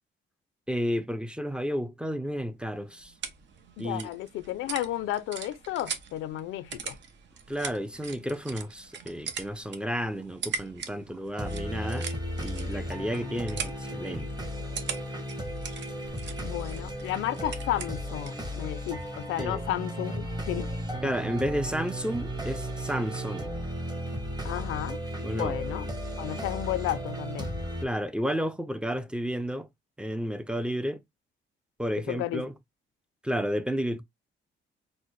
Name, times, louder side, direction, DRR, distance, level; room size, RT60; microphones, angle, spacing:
voice 1, 0.7-3.1 3.8-4.1 7.5-12.1 12.4-14.3 19.4-19.6 21.0-23.5 25.2-25.6 27.8-29.7 30.0-31.0 31.8-32.5 33.2-34.0, equal, 5° right, 0.4 m, -31 dB
sound 1, 2.6-18.5, right 6 dB, 65° right, 0.8 m, -41 dB
voice 2, 3.8-7.0 16.4-20.7 24.4-25.0 25.3-25.9 26.2-27.6 32.0-32.4, left 13 dB, 85° left, 0.4 m, -33 dB
sound 2, 11.4-27.9, equal, 20° right, 1.1 m, -35 dB
4.1 x 2.1 x 3.1 m
cardioid pair, 90°, 20 cm